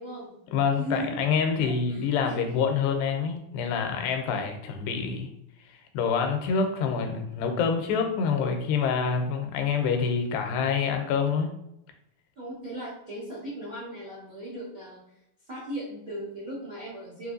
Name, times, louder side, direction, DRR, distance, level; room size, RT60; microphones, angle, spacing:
voice 1, 0.0-0.3 0.8-1.2 1.6-2.4 12.4-15.0 15.5-17.3, right 1 dB, 80° right, -9 dB, 0.8 m, -37 dB
voice 2, 0.5-5.3 5.9-11.5, left 6 dB, 90° left, 5 dB, 2.4 m, -26 dB
5.7 x 3.0 x 2.6 m, 0.81 s
omnidirectional pair, 4.1 m